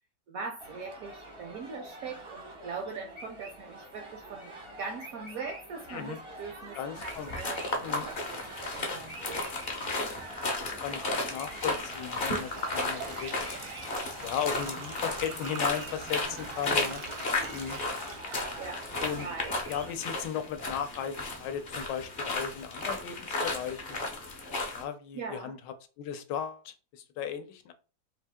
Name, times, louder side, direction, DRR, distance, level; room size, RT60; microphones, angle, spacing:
voice 1, 0.3-4.5 4.8-9.5 9.8-10.1 17.3-17.6 18.6-18.8 19.2-19.6 25.1-25.5, right 4 dB, 70° right, 3 dB, 0.8 m, -41 dB
sound 1, 0.6-19.9, right 1 dB, 35° right, 0.4 m, -46 dB
voice 2, 6.7-7.3 7.8-8.1 10.4-13.6 14.2-17.0 17.5-17.8 19.0-19.3 19.7-24.0 24.7-27.7, left 8 dB, 75° left, 9 dB, 1.2 m, -36 dB
sound 2, 7.0-24.8, left 2 dB, 45° left, 0.6 m, -34 dB
sound 3, 11.6-18.8 19.2-19.3 20.2-20.3 20.8-20.9 21.3-21.6, right 6 dB, 85° right, 1.5 m, -45 dB
4.1 x 2.7 x 3.5 m, 0.35 s
omnidirectional pair, 2.0 m